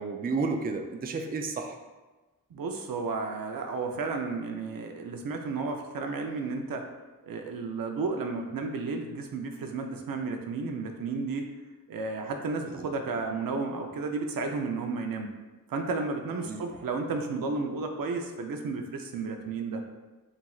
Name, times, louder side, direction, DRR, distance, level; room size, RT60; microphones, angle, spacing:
voice 1, 0.0-1.8 12.6-12.9 16.4-16.6, right 4 dB, 30° right, 4 dB, 0.4 m, -32 dB
voice 2, 2.5-6.9 7.2-11.5 11.9-15.3 15.7-19.8, right 4 dB, 85° right, 4 dB, 0.6 m, -32 dB
7.2 x 2.6 x 2.3 m, 1.2 s
wide cardioid pair, 115°, 33 cm